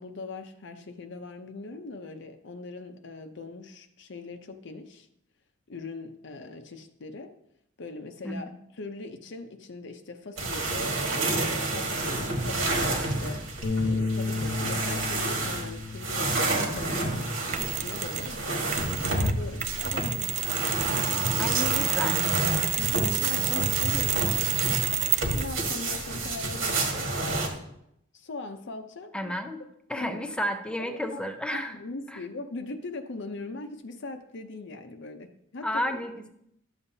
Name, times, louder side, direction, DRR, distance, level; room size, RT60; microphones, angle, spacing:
voice 1, 0.0-5.1 5.7-7.3 7.8-13.4 13.8-17.3 17.6-22.2 22.8-27.5 28.1-29.3 29.9-30.2 30.8-31.2 31.5-36.1, left 3 dB, 65° left, 6 dB, 0.7 m, -41 dB
sound 1, 10.4-27.5, right 2 dB, 80° right, 1.6 m, -29 dB
Bass guitar, 13.6-18.1 18.5-19.9, left 3 dB, 85° left, 1.1 m, -34 dB
Mechanisms, 17.5-18.3 18.7-25.6, right 11 dB, 35° right, 0.4 m, -29 dB
voice 2, 21.4-22.2 29.1-29.6 29.9-31.8 32.1-32.2 35.6-36.3, equal, 5° left, 6 dB, 0.6 m, -31 dB
11.5 x 7.0 x 2.7 m, 0.77 s
head